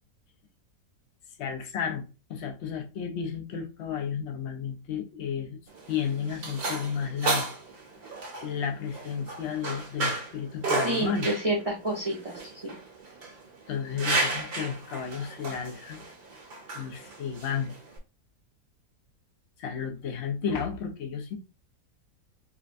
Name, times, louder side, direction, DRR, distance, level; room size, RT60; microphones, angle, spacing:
voice 1, 1.4-2.0 2.3-5.6 5.9-7.5 8.4-11.3 13.7-16.0 16.7-17.7 19.6-21.3, left 7 dB, 55° left, 0.8 m, -32 dB
sound 1, 5.7-18.0, right 2 dB, 65° right, 1.5 m, -33 dB
voice 2, 10.8-12.7, right 1 dB, 30° right, 0.7 m, -29 dB
4.9 x 2.2 x 2.5 m
omnidirectional pair, 1.8 m